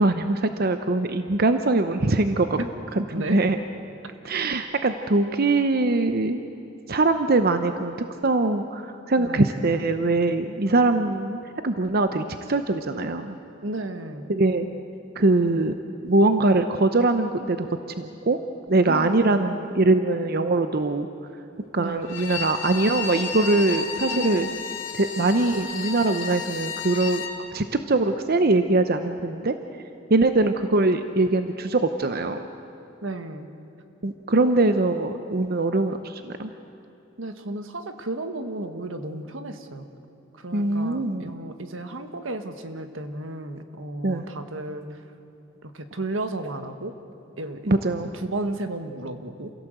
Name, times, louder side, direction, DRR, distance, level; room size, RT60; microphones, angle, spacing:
voice 1, 0.0-2.6 3.2-3.6 4.2-6.4 6.9-8.0 8.2-11.4 11.6-13.4 14.3-14.7 15.2-15.7 16.0-17.7 18.0-18.4 18.7-21.1 21.7-24.5 24.9-27.2 27.5-29.5 30.1-32.4 34.0-36.5 40.5-41.2 44.0-44.2 47.7-48.1, right 2 dB, 50° right, 8 dB, 0.8 m, -22 dB
voice 2, 3.0-3.4 9.2-9.5 10.6-10.9 13.6-14.3 18.9-19.6 21.8-22.2 24.1-24.6 33.0-33.5 34.4-34.7 37.2-39.9 40.3-45.0 45.6-47.0 47.4-47.7 48.1-49.5, right 2 dB, 85° right, 8 dB, 1.5 m, -33 dB
Bowed string instrument, 22.0-27.4, left 5 dB, 85° left, 2.3 m, -32 dB
28.0 x 16.5 x 7.8 m, 2.8 s
head